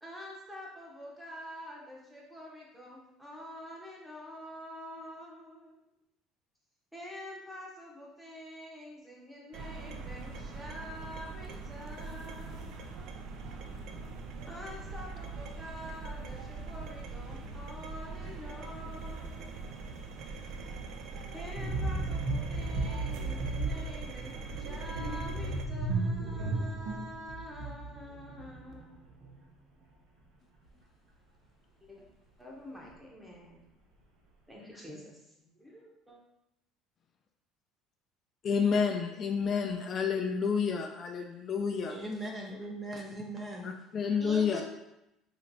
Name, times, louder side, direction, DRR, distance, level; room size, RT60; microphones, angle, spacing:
voice 1, 0.0-5.7 6.9-12.8 14.5-19.7 21.3-30.1 31.8-32.1 32.4-33.7 34.5-36.2, left 1 dB, 5° right, -3 dB, 1.1 m, -47 dB
sound 1, 9.5-25.7, right 4 dB, 65° right, 0.4 m, -42 dB
sound 2, 21.5-29.0 29.2-29.4, right 2 dB, 80° right, 1.1 m, -34 dB
voice 2, 38.4-41.9 43.6-44.6, left 6 dB, 45° left, 3 dB, 0.4 m, -29 dB
voice 3, 41.9-43.8 44.2-44.6, right 1 dB, 25° right, 0 dB, 0.7 m, -39 dB
3.2 x 2.8 x 4.0 m, 0.87 s
cardioid pair, 110°, 0 cm